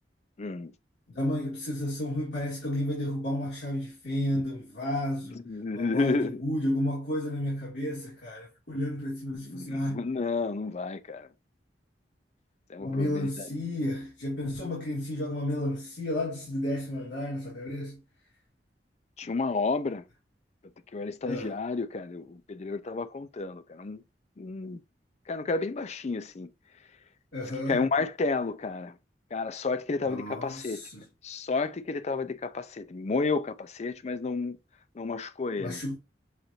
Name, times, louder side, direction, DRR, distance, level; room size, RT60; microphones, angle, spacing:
voice 1, 0.4-0.7 5.5-6.4 9.5-11.3 12.7-13.5 19.2-20.0 20.9-24.0 24.4-24.8 25.3-26.5 27.7-28.9 29.3-30.8 31.2-34.6 35.0-35.8, left 3 dB, 40° left, 0.4 m, -31 dB
voice 2, 1.1-5.4 5.7-10.0 12.8-18.0 21.2-21.5 27.3-27.8 30.0-31.0 35.6-36.0, left 1 dB, 85° left, 2.1 m, -32 dB
6.5 x 2.6 x 2.8 m
head